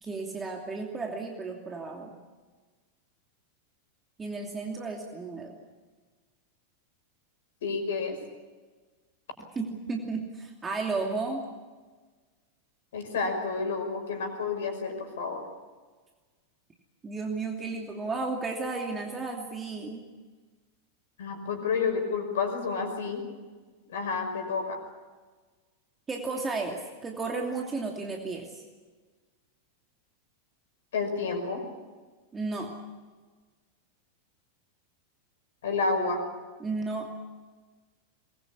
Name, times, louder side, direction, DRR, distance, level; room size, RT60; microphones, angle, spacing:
voice 1, 0.0-2.1 4.2-5.5 9.5-11.4 17.0-20.1 26.1-28.6 32.3-32.7 36.6-37.1, right 3 dB, 15° right, 1 dB, 2.8 m, -33 dB
voice 2, 7.6-8.2 12.9-15.4 21.2-23.2 23.9-24.8 30.9-31.6 35.6-36.2, left 4 dB, 60° left, 5 dB, 5.5 m, -30 dB
22.5 x 21.0 x 8.5 m, 1.4 s
figure-of-eight pair, 90°, 0 cm